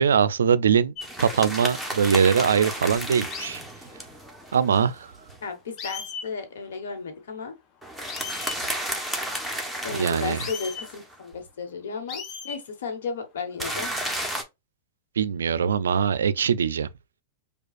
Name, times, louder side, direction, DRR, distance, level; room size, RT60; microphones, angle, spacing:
voice 1, 0.0-3.6 4.5-5.1 9.9-10.4 15.2-16.9, right 7 dB, 90° right, 0.3 m, -22 dB
sound 1, 1.0-1.1 3.3-3.6 5.3-5.4 5.8-6.3 8.1-8.6 10.3-10.9 12.1-12.6 13.5-13.9, left 6 dB, 40° left, 0.8 m, -36 dB
sound 2, 1.0-5.4 7.8-11.1 13.6-14.4, equal, ahead, 0.9 m, -33 dB
voice 2, 5.4-7.5 9.8-13.9, left 5 dB, 80° left, 1.1 m, -34 dB
4.9 x 2.3 x 2.4 m
hypercardioid pair, 125°, 0 cm